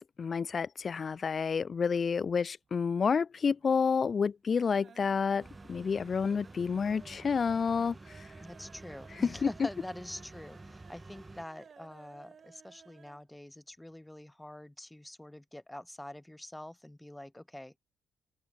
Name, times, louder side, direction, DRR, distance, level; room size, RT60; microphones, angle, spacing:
voice 1, 0.0-8.3 9.2-9.5, left 6 dB, 40° left, 0.9 m, -30 dB
sound 1, 2.5-3.1 3.4-3.9 4.2-13.3 13.5-13.6 13.9-14.0, right 6 dB, 50° right, 7.2 m, -58 dB
sound 2, 5.4-11.5, right 2 dB, 20° right, 2.3 m, -50 dB
voice 2, 8.4-17.8, left 1 dB, 5° left, 6.6 m, -45 dB
open air
cardioid pair, 90°, 0 cm